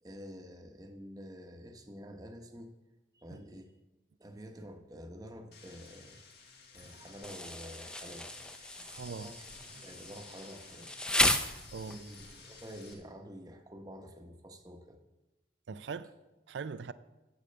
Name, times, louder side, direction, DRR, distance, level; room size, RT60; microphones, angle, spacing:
voice 1, 0.0-2.7 3.1-3.7 4.2-6.2 6.7-8.3 8.6-9.5 9.8-10.9 11.8-15.0, equal, 20° right, 0.9 m, -48 dB
sound 1, 5.5-12.9, left 3 dB, 55° left, 1.8 m, -54 dB
Insect, 7.2-12.2, left 1 dB, 5° left, 0.4 m, -34 dB
voice 2, 9.0-9.3 9.8-9.9 11.7-12.0 15.7-16.1 16.5-16.9, right 5 dB, 75° right, 0.4 m, -41 dB
8.4 x 8.0 x 6.7 m
head